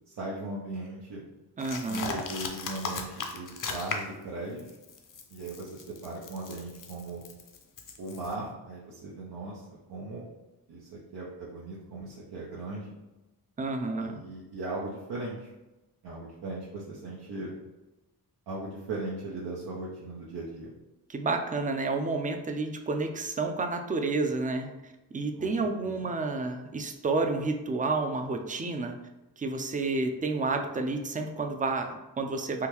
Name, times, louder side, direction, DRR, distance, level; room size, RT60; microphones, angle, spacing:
voice 1, 0.1-1.2 1.9-4.6 5.3-7.2 8.0-9.6 9.9-10.2 10.7-12.9 14.0-15.5 16.0-17.5 18.5-20.7 25.4-25.5 25.8-26.0, right 2 dB, 80° right, -5 dB, 0.7 m, -38 dB
sound 1, 1.6-4.2 4.6-8.4, left 4 dB, 55° left, 0.6 m, -37 dB
voice 2, 1.6-2.2 13.6-14.2 21.1-29.0 29.4-32.7, right 3 dB, 20° right, 5 dB, 0.4 m, -30 dB
3.6 x 2.2 x 3.0 m, 1.0 s
cardioid pair, 60°, 38 cm